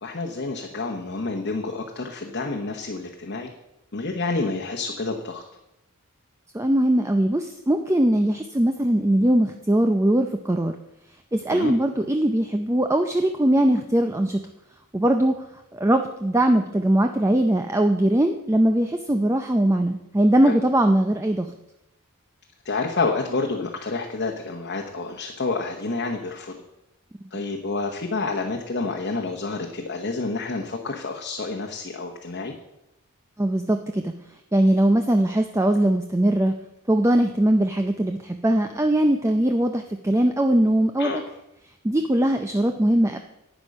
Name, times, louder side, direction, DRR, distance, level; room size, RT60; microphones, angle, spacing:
voice 1, 0.0-3.5 3.9-5.4 11.5-11.7 20.4-20.5 22.6-26.6 27.3-32.5 41.0-41.2, left 3 dB, 50° left, 1 dB, 1.1 m, -29 dB
voice 2, 6.5-10.7 11.3-14.4 14.9-15.4 15.7-21.5 33.4-34.1 34.5-36.5 36.9-41.2 41.8-43.2, right 1 dB, 15° right, 6 dB, 0.5 m, -21 dB
11.5 x 9.1 x 5.3 m, 0.88 s
head